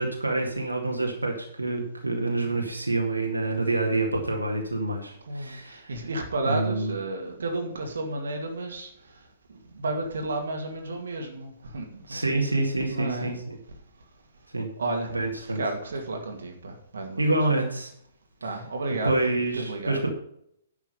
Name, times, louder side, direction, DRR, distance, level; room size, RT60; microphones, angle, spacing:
voice 1, 0.0-5.9 6.5-7.0 12.1-13.6 14.5-14.7 15.1-15.6 17.2-17.9 19.0-20.1, right 2 dB, 80° right, 1 dB, 2.0 m, -27 dB
voice 2, 5.2-12.2 12.9-13.4 14.0-14.1 14.8-15.2 15.4-17.4 18.4-19.2 19.5-20.0, right 2 dB, 60° right, 3 dB, 2.1 m, -32 dB
10.5 x 7.2 x 5.4 m, 0.73 s
figure-of-eight pair, 120°, 0 cm